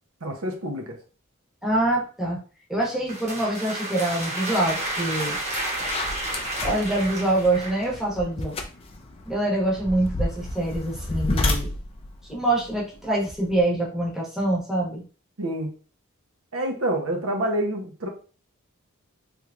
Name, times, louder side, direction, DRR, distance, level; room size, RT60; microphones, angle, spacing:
voice 1, 0.2-1.0 15.4-15.7 16.5-18.1, right 1 dB, 75° right, 2 dB, 0.7 m, -27 dB
voice 2, 1.6-2.4 2.7-5.4 6.6-8.5 9.3-11.7 12.3-15.0, right 1 dB, ahead, -5 dB, 0.9 m, -25 dB
sound 1, 2.8-7.9, right 1 dB, 35° right, 1.1 m, -31 dB
sound 2, 4.8-5.0 5.3-13.6, left 2 dB, 25° left, 0.4 m, -31 dB
3.6 x 3.0 x 2.3 m, 0.38 s
head